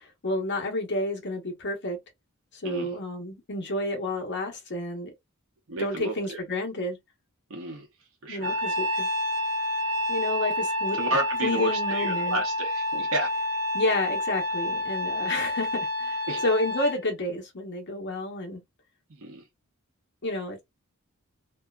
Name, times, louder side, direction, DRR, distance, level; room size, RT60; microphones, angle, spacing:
voice 1, 0.0-2.0 2.5-5.1 5.8-7.0 8.3-9.1 10.1-11.0 11.4-12.4 13.7-18.6 20.2-20.6, left 1 dB, 55° left, 1.0 m, -30 dB
voice 2, 2.6-2.9 5.7-6.4 7.5-7.9 8.2-8.6 10.9-13.3 16.3-16.4 19.2-19.4, right 1 dB, 65° right, 0.9 m, -32 dB
Trumpet, 8.4-17.0, left 1 dB, 40° right, 1.2 m, -28 dB
2.7 x 2.3 x 2.2 m
head